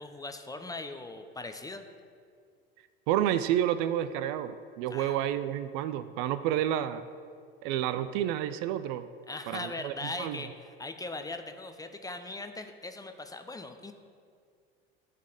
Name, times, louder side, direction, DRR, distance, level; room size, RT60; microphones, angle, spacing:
voice 1, 0.0-1.8 4.9-5.2 9.3-13.9, left 2 dB, 10° left, 7 dB, 0.7 m, -40 dB
voice 2, 3.1-7.1 7.6-9.1 9.5-9.9 10.2-10.4, right 11 dB, 60° right, 12 dB, 0.5 m, -30 dB
10.5 x 4.1 x 6.5 m, 2.2 s
hypercardioid pair, 70°, 30 cm